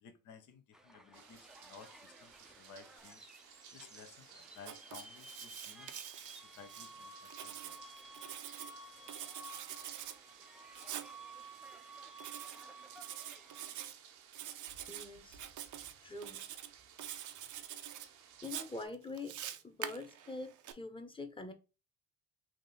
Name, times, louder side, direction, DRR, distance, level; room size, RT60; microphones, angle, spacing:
voice 1, 0.0-3.2 3.7-5.9 6.4-7.8, left 6 dB, 55° left, 0.9 m, -56 dB
sound 1, 0.7-13.9, right 1 dB, ahead, 0.6 m, -54 dB
sound 2, 1.1-18.9, right 8 dB, 85° right, 0.9 m, -58 dB
Writing, 4.6-6.9 7.3-8.7 9.1-10.2 10.8-11.1 12.2-12.6 13.0-13.9 14.3-15.1 15.3-15.9 16.2-16.7 17.0-18.1 18.4-20.7, right 11 dB, 55° right, 0.6 m, -45 dB
voice 2, 14.9-15.4 16.0-16.5 18.4-19.4 19.6-21.5, left 2 dB, 15° left, 1.0 m, -44 dB
3.7 x 2.7 x 4.2 m
supercardioid pair, 75°, 35 cm